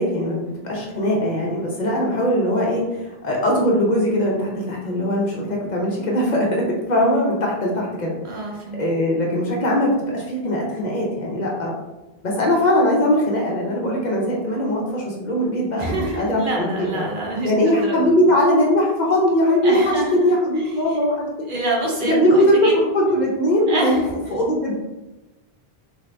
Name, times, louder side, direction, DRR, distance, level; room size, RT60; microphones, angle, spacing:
voice 1, 0.0-8.4 8.8-11.7 12.2-17.0 17.4-21.2 22.0-24.0 24.3-24.7, equal, 50° left, -2 dB, 0.7 m, -20 dB
voice 2, 8.2-8.8 15.7-18.1 19.6-20.3 20.6-21.0 21.5-22.7 23.7-24.0, right 2 dB, 60° right, -1 dB, 0.8 m, -27 dB
2.7 x 2.7 x 3.2 m, 1.0 s
omnidirectional pair, 1.0 m